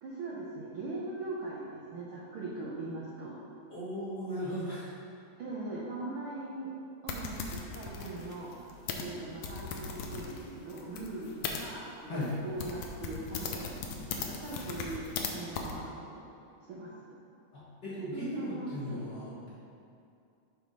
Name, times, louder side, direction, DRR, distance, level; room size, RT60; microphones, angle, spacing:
voice 1, 0.0-3.4 5.4-6.7 7.0-13.8 14.1-16.2 16.7-17.1 18.1-19.0, right 2 dB, 85° right, -6 dB, 1.1 m, -41 dB
voice 2, 3.7-4.9 12.1-12.3 17.5-19.5, equal, 45° left, -10 dB, 1.5 m, -37 dB
sound 1, 7.1-11.6 12.2-12.3 12.6-15.3 15.6-15.7, left 5 dB, 85° left, 1.3 m, -38 dB
6.5 x 4.6 x 5.5 m, 2.5 s
omnidirectional pair, 3.6 m